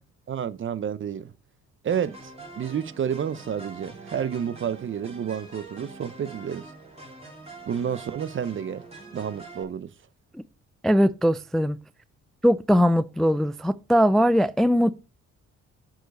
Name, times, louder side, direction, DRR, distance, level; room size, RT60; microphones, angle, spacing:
voice 1, 0.3-1.3 1.8-6.7 7.7-8.8 9.1-9.9, right 8 dB, 40° right, 0.6 m, -30 dB
sound 1, 1.9-9.6, right 3 dB, 20° right, 3.9 m, -44 dB
voice 2, 10.8-11.8 12.4-14.9, equal, ahead, 0.3 m, -20 dB
8.9 x 4.8 x 5.2 m
cardioid pair, 90°, 30 cm